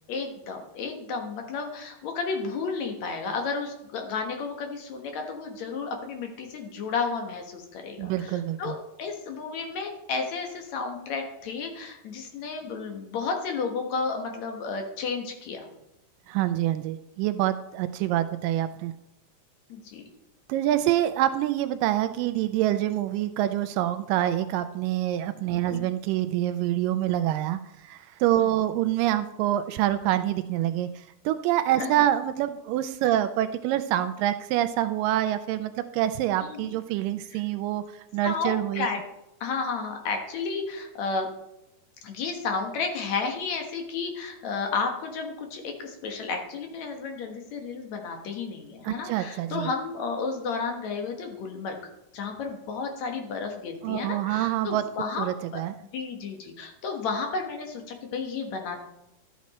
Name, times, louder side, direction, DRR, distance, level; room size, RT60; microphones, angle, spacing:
voice 1, 0.1-15.7 19.7-20.0 25.7-25.9 28.3-28.5 31.8-31.9 36.4-36.7 37.3-37.4 38.2-39.0 39.4-41.3 42.0-51.8 52.1-55.3 55.5-55.6 55.9-58.8, left 4 dB, 60° left, 3 dB, 2.4 m, -32 dB
voice 2, 8.0-8.8 16.3-18.9 20.5-38.9 48.8-49.7 53.8-54.8 55.2-55.7, right 13 dB, 85° right, 11 dB, 2.1 m, -26 dB
12.5 x 8.5 x 4.2 m, 0.86 s
omnidirectional pair, 3.9 m